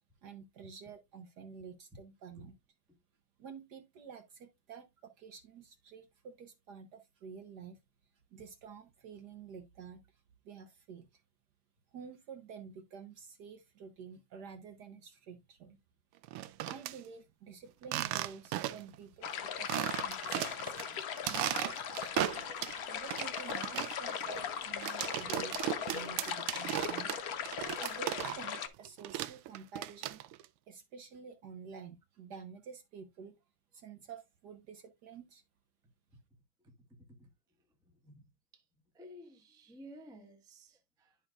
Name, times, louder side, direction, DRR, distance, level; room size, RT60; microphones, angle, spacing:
voice 1, 0.2-2.6 3.4-7.8 8.3-11.2 11.9-15.8 16.6-20.8 21.3-22.4 22.9-27.1 27.8-30.2 30.7-33.4 33.7-35.4, right 6 dB, 60° right, 1.2 m, -50 dB
sound 1, 16.2-16.9 17.8-18.9 19.3-19.4 19.7-20.8 21.2-22.8 23.1-28.6 28.8-30.4, right 14 dB, 90° right, 1.5 m, -36 dB
sound 2, 19.2-28.7, left 8 dB, 60° left, 1.0 m, -39 dB
voice 2, 36.6-37.3 37.8-38.2 38.5-38.6 38.9-41.2, equal, 5° right, 0.6 m, -54 dB
11.0 x 5.6 x 2.3 m
omnidirectional pair, 2.4 m